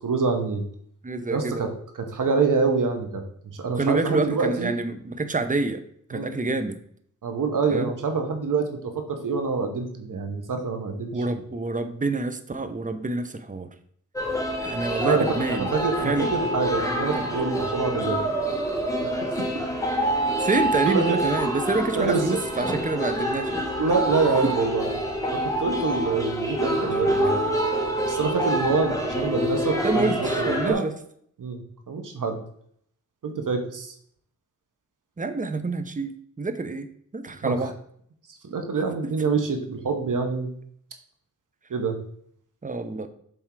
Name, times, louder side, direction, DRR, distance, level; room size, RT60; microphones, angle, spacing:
voice 1, 0.0-0.6 1.3-1.7 2.0-3.2 3.5-4.7 6.1-6.3 7.2-11.2 15.0-15.2 15.5-18.2 19.2-19.3 20.9-21.2 21.9-22.4 23.8-24.9 25.3-27.4 28.0-30.8 31.4-32.4 33.2-33.9 37.4-37.7 38.4-40.5 41.7-41.9, right 4 dB, 85° right, 5 dB, 1.2 m, -26 dB
voice 2, 1.0-1.7 3.7-5.8 6.1-6.8 7.7-7.9 11.1-13.7 14.6-15.7 16.0-16.3 17.1-17.4 20.4-23.7 26.8-27.2 29.8-30.9 35.2-36.9 37.1-37.7 42.6-43.1, right 3 dB, 25° right, 10 dB, 0.8 m, -27 dB
sound 1, 14.2-30.7, right 1 dB, 10° left, 1.5 m, -26 dB
7.4 x 3.6 x 4.7 m, 0.65 s
cardioid pair, 65°, 31 cm